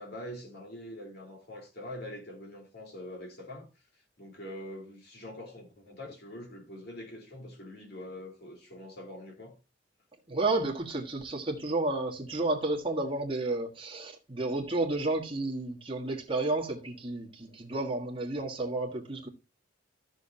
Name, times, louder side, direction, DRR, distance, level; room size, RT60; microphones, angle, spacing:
voice 1, 0.0-3.7 4.2-9.5, left 1 dB, 55° left, 3.0 m, -44 dB
voice 2, 10.3-19.3, right 2 dB, 25° right, 1.5 m, -31 dB
13.5 x 6.2 x 2.8 m
head